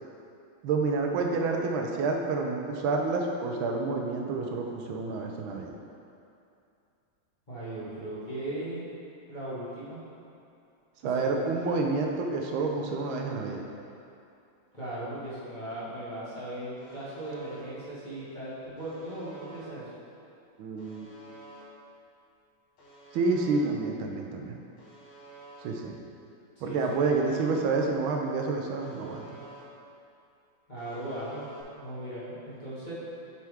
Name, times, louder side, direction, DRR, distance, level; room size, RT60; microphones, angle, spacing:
voice 1, 0.6-5.7 11.0-13.6 20.6-21.1 23.1-24.6 25.6-26.0 26.6-29.3, right 3 dB, 80° right, 1 dB, 1.4 m, -29 dB
voice 2, 7.5-8.9 9.3-10.0 11.2-11.4 11.7-11.8 14.7-19.9 26.5-27.0 30.7-31.5 31.7-32.9, right 1 dB, 25° left, -11 dB, 1.6 m, -38 dB
Alarm, 16.8-17.6 18.8-19.6 20.8-21.6 22.8-23.6 24.8-25.6 26.8-27.6 28.8-29.6 30.8-31.6, right 3 dB, 80° left, 2.0 m, -50 dB
7.5 x 5.8 x 3.5 m, 2.6 s
omnidirectional pair, 2.3 m